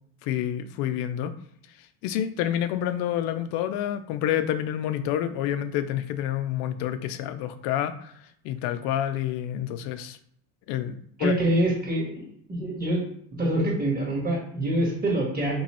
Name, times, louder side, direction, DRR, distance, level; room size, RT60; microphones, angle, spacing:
voice 1, 0.2-1.3 2.0-8.1 8.4-10.2 10.7-11.3, left 11 dB, 70° left, 11 dB, 0.5 m, -28 dB
voice 2, 11.2-12.2 12.5-13.0 13.4-15.6, right 1 dB, 20° right, -3 dB, 1.5 m, -25 dB
3.0 x 2.3 x 4.2 m, 0.66 s
supercardioid pair, 110°, 41 cm